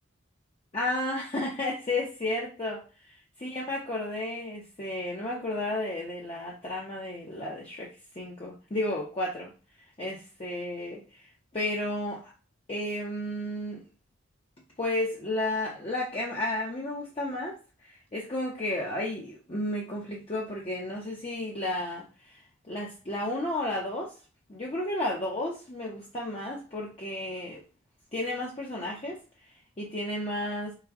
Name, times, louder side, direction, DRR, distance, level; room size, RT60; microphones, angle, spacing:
voice 1, 0.7-2.8 3.4-9.5 10.0-11.0 11.5-12.3 12.7-13.8 14.8-17.6 17.8-22.4 22.7-24.1 24.5-27.6 28.1-29.2 29.8-30.7, left 1 dB, 30° left, -4 dB, 0.7 m, -32 dB
4.8 x 2.2 x 3.5 m, 0.33 s
head